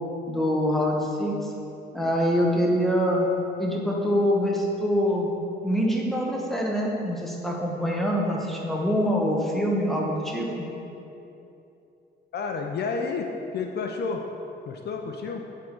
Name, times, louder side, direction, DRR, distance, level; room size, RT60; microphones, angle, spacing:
voice 1, 0.3-1.5 1.9-3.3 3.6-5.3 5.6-10.5, equal, ahead, -2 dB, 1.1 m, -24 dB
voice 2, 12.3-14.2 14.7-15.4, left 4 dB, 55° left, 3 dB, 0.5 m, -30 dB
8.3 x 3.8 x 4.5 m, 2.8 s
cardioid pair, 90°, 20 cm